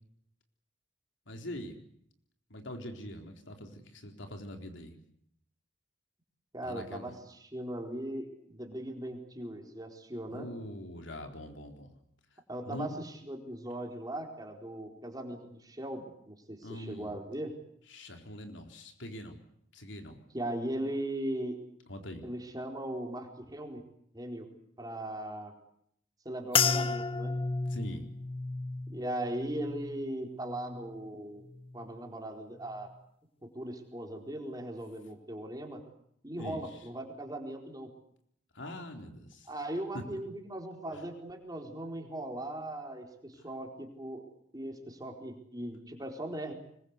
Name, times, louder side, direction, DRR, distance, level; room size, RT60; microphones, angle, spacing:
voice 1, 1.3-1.8 2.5-4.9 6.6-7.1 10.3-11.9 12.7-13.0 16.6-17.1 17.9-19.4 19.7-20.2 21.9-22.3 27.7-28.0 36.4-36.6 38.5-39.5 39.9-40.0 40.9-41.0 43.4-43.5, left 1 dB, 70° left, 4 dB, 4.1 m, -43 dB
voice 2, 6.5-10.5 12.5-17.5 20.3-21.6 22.2-23.8 24.1-24.5 24.8-25.5 26.2-27.4 28.9-31.4 31.7-32.9 33.4-35.8 36.2-37.9 39.5-44.2 44.5-46.5, right 1 dB, 20° right, 3 dB, 4.3 m, -39 dB
sound 1, 26.5-31.1 31.4-32.0 32.6-32.9, left 5 dB, 30° left, 1.2 m, -33 dB
25.0 x 21.5 x 8.2 m, 0.72 s
head